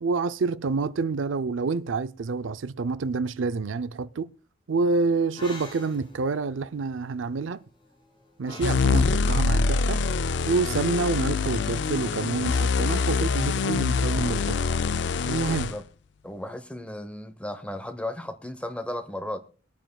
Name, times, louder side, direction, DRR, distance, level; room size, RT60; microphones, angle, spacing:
voice 1, 0.0-4.3 4.7-7.6 8.4-10.0 10.5-14.6 15.3-15.7, right 4 dB, 90° right, 0.5 m, -27 dB
sound 1, 5.2-10.2, left 2 dB, 25° left, 2.8 m, -47 dB
sound 2, 8.6-15.8, left 4 dB, 65° left, 0.4 m, -25 dB
voice 2, 16.2-19.4, left 1 dB, 5° left, 0.9 m, -35 dB
24.0 x 9.0 x 2.3 m
head